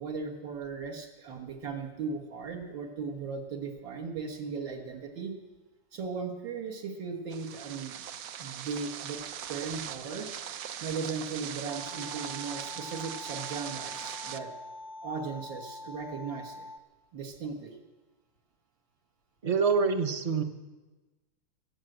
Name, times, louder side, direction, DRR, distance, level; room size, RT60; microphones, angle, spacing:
voice 1, 0.0-5.3 5.9-8.0 8.4-9.2 9.5-10.3 10.8-14.5 15.0-16.7 17.1-17.8, right 5 dB, 85° right, 0 dB, 2.2 m, -37 dB
sound 1, 7.3-14.4, right 9 dB, 65° right, 0.8 m, -40 dB
sound 2, 11.7-16.8, left 2 dB, 70° left, 0.9 m, -45 dB
voice 2, 19.4-20.4, right 5 dB, 50° right, 7 dB, 0.4 m, -26 dB
18.5 x 7.9 x 7.8 m, 1.2 s
omnidirectional pair, 2.0 m